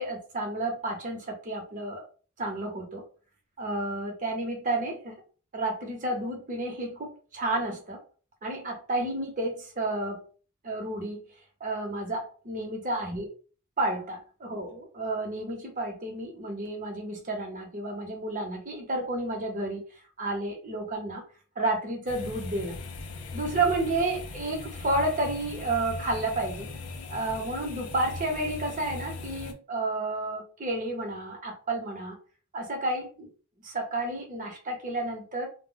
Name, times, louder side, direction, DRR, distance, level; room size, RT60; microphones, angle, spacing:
voice 1, 0.0-2.0 2.4-3.0 3.6-5.2 5.5-8.0 8.4-10.2 10.6-11.2 11.6-13.3 13.8-19.8 20.2-21.2 21.6-22.8 23.3-26.7 27.1-32.2 32.5-33.3 33.6-35.5, right 2 dB, 40° right, 2 dB, 0.8 m, -31 dB
sound 1, 22.1-29.5, left 3 dB, 90° left, 0.5 m, -39 dB
2.1 x 2.0 x 3.8 m, 0.38 s
head